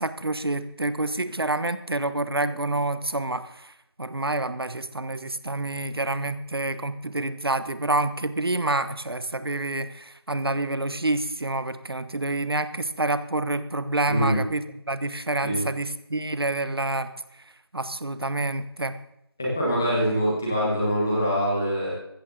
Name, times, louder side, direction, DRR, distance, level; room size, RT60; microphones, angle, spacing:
voice 1, 0.0-3.7 4.0-17.1 17.7-19.0, right 2 dB, 65° right, 13 dB, 1.2 m, -28 dB
voice 2, 14.1-14.4 15.4-15.6 19.4-21.9, equal, 5° left, -6 dB, 1.3 m, -24 dB
15.5 x 14.0 x 3.8 m, 0.79 s
figure-of-eight pair, 180°, 13 cm